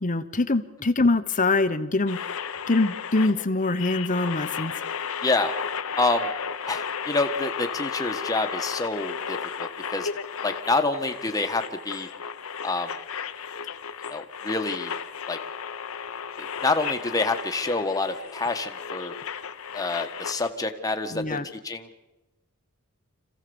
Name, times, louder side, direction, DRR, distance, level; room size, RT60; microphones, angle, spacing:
voice 1, 0.0-2.2 2.7-4.7 21.1-21.5, left 2 dB, 35° left, 10 dB, 1.0 m, -24 dB
sound 1, 2.1-20.5, left 7 dB, 70° left, 1.0 m, -34 dB
voice 2, 5.2-5.5 6.0-6.3 6.7-10.1 10.4-12.1 12.6-12.9 14.1-14.9 15.3-15.4 16.6-19.1 19.7-21.9, left 3 dB, 15° left, 5 dB, 1.5 m, -27 dB
26.5 x 16.0 x 7.1 m, 1.0 s
head